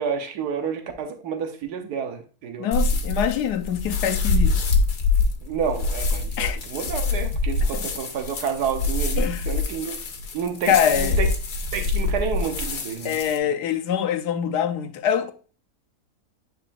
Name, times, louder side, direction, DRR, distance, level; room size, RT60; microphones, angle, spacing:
voice 1, 0.0-2.7 5.4-10.0 10.3-11.3 11.7-13.2, right 6 dB, 80° right, 1.5 m, -29 dB
voice 2, 2.6-4.6 6.4-6.6 7.7-7.9 9.2-9.4 10.7-11.2 13.0-15.3, left 9 dB, 90° left, 1.3 m, -24 dB
sound 1, 2.7-13.4, left 3 dB, 75° left, 1.6 m, -25 dB
9.8 x 4.7 x 2.5 m
omnidirectional pair, 1.7 m